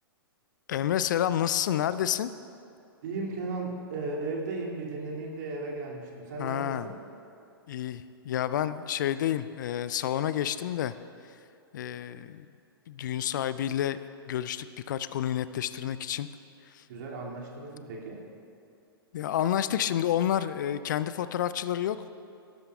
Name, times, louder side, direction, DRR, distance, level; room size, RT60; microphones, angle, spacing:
voice 1, 0.7-2.3 6.4-6.9 7.7-10.9 11.7-12.5 12.9-14.0 14.3-16.3 16.7-16.8 19.1-22.1, left 11 dB, 55° left, 14 dB, 0.4 m, -29 dB
voice 2, 3.0-7.0 16.9-18.2, right 3 dB, 50° right, -2 dB, 2.5 m, -35 dB
18.0 x 12.5 x 2.4 m, 2.5 s
figure-of-eight pair, 105°, 13 cm